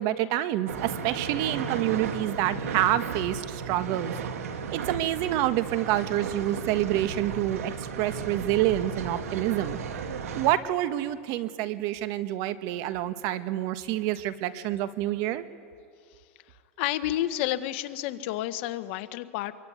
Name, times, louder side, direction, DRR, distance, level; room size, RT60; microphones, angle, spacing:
voice 1, 0.0-4.1 4.7-9.8 10.3-15.4, right 13 dB, 50° right, 12 dB, 1.4 m, -27 dB
sound 1, 0.7-10.5, right 6 dB, 85° right, 2.4 m, -35 dB
voice 2, 16.8-19.5, left 14 dB, 55° left, 11 dB, 1.3 m, -30 dB
25.5 x 22.5 x 9.5 m, 2.1 s
supercardioid pair, 135°, 8 cm